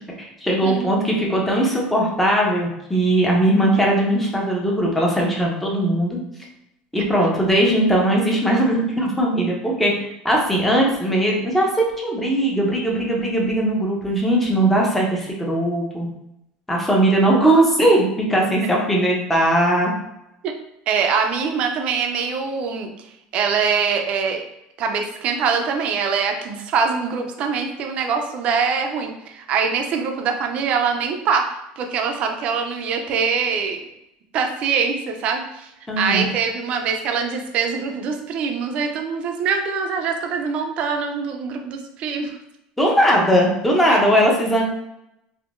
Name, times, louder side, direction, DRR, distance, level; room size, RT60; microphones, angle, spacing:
voice 1, 0.2-6.2 6.9-9.9 10.2-16.1 16.7-19.9 35.9-36.3 42.8-44.6, right 1 dB, 5° left, -2 dB, 0.6 m, -19 dB
voice 2, 20.9-24.4 24.8-33.8 34.3-42.4 43.9-44.0, right 5 dB, 40° right, 4 dB, 0.4 m, -23 dB
3.5 x 2.6 x 2.5 m, 0.84 s
cardioid pair, 160°, 3 cm